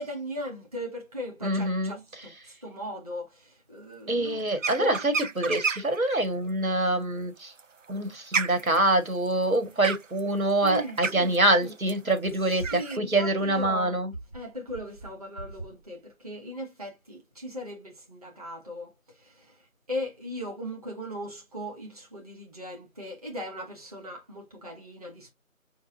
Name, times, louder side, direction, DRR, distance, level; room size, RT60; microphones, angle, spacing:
voice 1, 0.0-4.5 4.8-5.0 10.6-11.3 11.6-11.7 12.4-14.0 14.3-25.3, equal, 25° right, 1.1 m, -38 dB
voice 2, 1.4-2.0 4.1-7.5 7.9-14.1, right 1 dB, 85° right, 1.8 m, -25 dB
sound 1, 4.6-6.0 7.4-13.0, right 5 dB, 65° right, 0.6 m, -31 dB
5.8 x 2.5 x 2.7 m
figure-of-eight pair, 165°, 41 cm